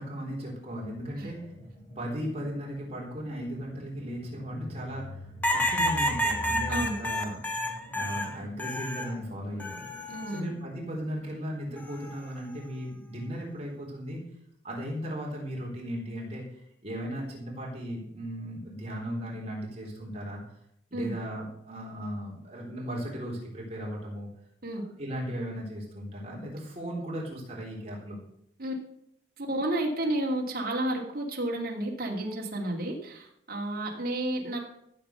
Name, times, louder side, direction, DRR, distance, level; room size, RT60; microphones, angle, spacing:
voice 1, 0.0-1.5 2.0-5.3 5.5-7.4 7.9-9.9 10.3-14.2 14.6-16.4 16.8-20.4 20.9-24.3 25.0-28.2, equal, 35° right, -3 dB, 3.8 m, -36 dB
sound 1, 0.8-11.3, equal, 40° left, 5.1 m, -45 dB
sound 2, 5.4-9.1 9.6-10.4 11.8-12.2, left 1 dB, 10° left, 1.1 m, -30 dB
voice 2, 6.7-7.0 10.1-10.5 20.9-21.1 24.6-24.8 28.6-28.7 29.4-34.6, right 1 dB, 50° right, -2 dB, 2.5 m, -31 dB
14.0 x 7.4 x 6.8 m, 0.73 s
head